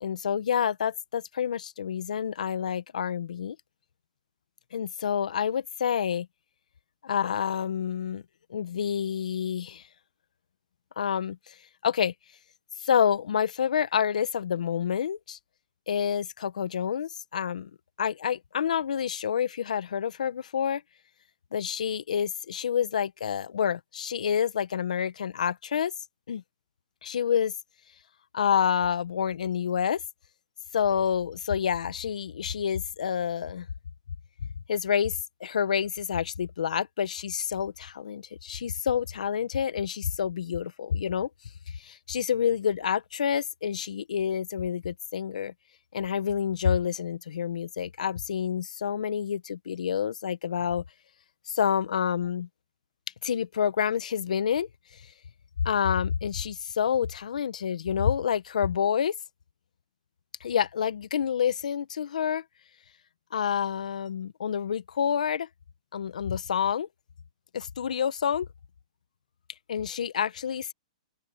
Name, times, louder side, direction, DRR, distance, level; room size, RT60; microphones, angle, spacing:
voice 1, 0.0-3.6 4.7-6.3 7.0-8.2 8.5-9.8 11.0-11.5 11.8-12.1 12.8-15.4 15.9-17.7 18.0-20.8 21.5-25.9 26.3-26.4 27.0-27.5 28.3-30.0 30.7-33.7 34.7-41.3 41.8-45.5 45.9-50.8 51.5-52.5 53.2-54.7 55.6-59.1 60.4-62.4 63.3-65.5 65.9-66.9 67.5-68.5 69.7-70.7, left 8 dB, 75° left, 1.2 m, -28 dB
open air
hypercardioid pair, 160°, 4 cm